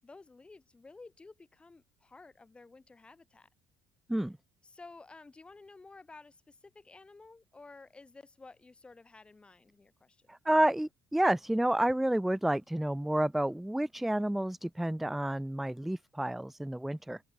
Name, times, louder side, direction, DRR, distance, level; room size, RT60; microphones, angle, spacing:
voice 1, 0.0-3.5 4.6-10.3, left 3 dB, 15° left, 5.6 m, -53 dB
voice 2, 10.3-17.2, right 1 dB, 5° right, 0.4 m, -30 dB
cardioid pair, 125°, 6 cm